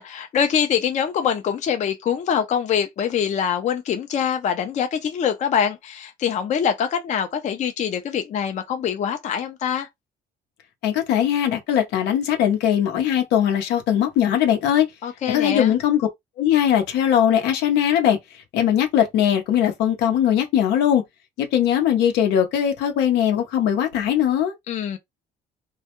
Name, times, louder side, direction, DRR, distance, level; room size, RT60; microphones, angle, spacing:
voice 1, 0.0-9.9 15.0-15.7 24.7-25.0, left 8 dB, 45° left, 0.5 m, -24 dB
voice 2, 10.8-14.9 15.3-16.1 16.4-18.2 18.5-21.0 21.4-24.5, left 10 dB, 85° left, 0.8 m, -20 dB
2.3 x 2.1 x 2.9 m
cardioid pair, 110°, 17 cm